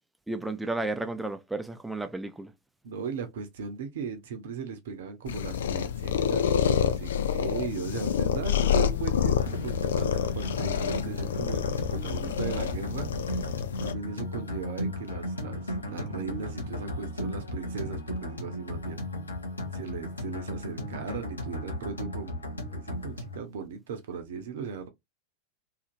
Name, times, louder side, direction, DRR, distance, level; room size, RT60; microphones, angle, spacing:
voice 1, 0.3-2.5, right 2 dB, 5° right, 0.5 m, -33 dB
voice 2, 2.8-13.1 13.8-19.0 19.7-22.4 22.7-24.9, right 5 dB, 55° right, 0.7 m, -37 dB
sound 1, 5.3-13.9, left 8 dB, 60° left, 0.4 m, -28 dB
sound 2, 9.4-23.4, left 1 dB, 80° left, 0.8 m, -35 dB
2.8 x 2.6 x 2.5 m
figure-of-eight pair, 90°, 0 cm